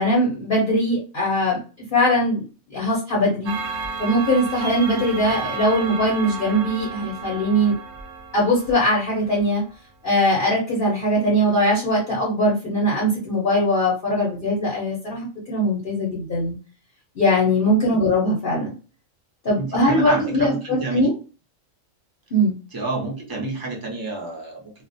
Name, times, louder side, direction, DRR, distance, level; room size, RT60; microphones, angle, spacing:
voice 1, 0.0-1.6 1.9-2.4 2.7-3.5 4.0-7.7 8.3-9.6 10.0-16.5 17.1-18.7 19.4-21.1 22.3-22.5, equal, 50° left, -5 dB, 0.8 m, -21 dB
Clock, 3.5-9.4, right 4 dB, 60° right, 0.8 m, -32 dB
voice 2, 19.6-21.1 22.7-24.7, right 2 dB, 25° right, -1 dB, 0.5 m, -29 dB
2.4 x 2.0 x 2.5 m, 0.35 s
omnidirectional pair, 1.4 m